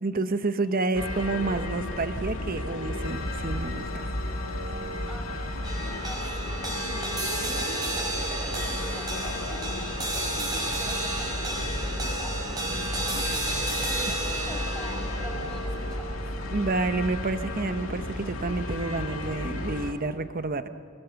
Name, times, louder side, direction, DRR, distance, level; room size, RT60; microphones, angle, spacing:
voice 1, 0.0-4.1 7.5-7.6 16.5-20.7, right 3 dB, 40° right, 10 dB, 0.9 m, -29 dB
sound 1, 0.9-19.9, left 1 dB, 70° left, 2.1 m, -34 dB
sound 2, 3.0-17.3, equal, 25° left, 1.6 m, -39 dB
sound 3, 5.6-18.1, right 2 dB, 20° right, 4.7 m, -33 dB
voice 2, 6.0-7.0 7.4-13.2 13.7-16.2, equal, ahead, -2 dB, 5.8 m, -44 dB
25.5 x 20.5 x 7.0 m, 2.7 s
head